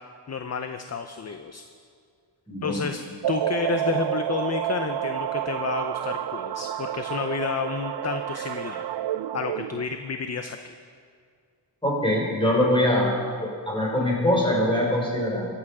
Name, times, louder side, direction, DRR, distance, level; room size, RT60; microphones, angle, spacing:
voice 1, 0.3-1.6 2.6-8.8 9.3-10.7, left 5 dB, 35° left, 7 dB, 0.6 m, -30 dB
sound 1, 3.2-9.9, right 11 dB, 65° right, 0.5 m, -29 dB
voice 2, 11.8-13.1 13.4-15.5, left 1 dB, 10° left, -4 dB, 4.6 m, -23 dB
23.0 x 8.8 x 4.9 m, 2.1 s
wide cardioid pair, 130°, 44 cm